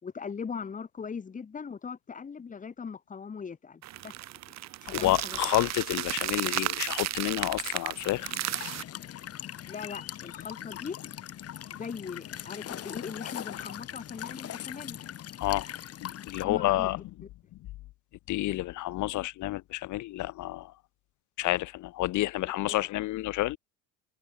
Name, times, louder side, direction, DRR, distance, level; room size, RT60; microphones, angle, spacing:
voice 1, 0.0-4.2 4.8-5.4 9.7-11.0 11.7-15.0 16.4-16.9 22.4-22.9, left 6 dB, 25° left, 3.0 m, -40 dB
sound 1, 3.8-8.8, right 14 dB, 55° right, 2.7 m, -33 dB
voice 2, 4.9-8.3 15.4-15.6 16.0-17.0 18.3-20.7 21.4-23.6, left 17 dB, 65° left, 3.1 m, -29 dB
Walk footsteps / Chirp tweet / Stream, 8.0-16.4, left 11 dB, 50° left, 7.0 m, -41 dB
cardioid pair, 125°, 32 cm